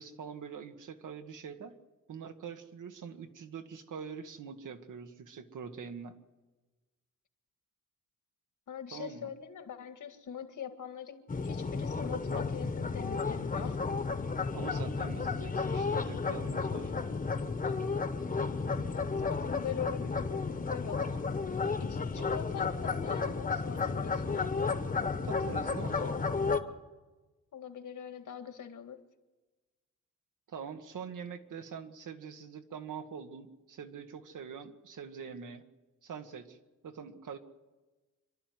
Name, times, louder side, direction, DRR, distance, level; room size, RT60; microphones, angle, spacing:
voice 1, 0.0-1.7 2.1-6.1 8.9-9.3 14.5-16.9 22.2-22.3 25.2-26.2 30.5-35.7 36.0-36.6 36.8-37.4, right 6 dB, 75° right, 7 dB, 1.7 m, -44 dB
voice 2, 8.7-13.9 17.6-17.7 18.7-21.2 21.8-24.5 27.5-29.0, left 8 dB, 75° left, 7 dB, 1.9 m, -43 dB
sound 1, 11.3-26.6, left 4 dB, 25° left, 1.1 m, -33 dB
26.5 x 12.5 x 9.5 m, 1.2 s
wide cardioid pair, 155°, 31 cm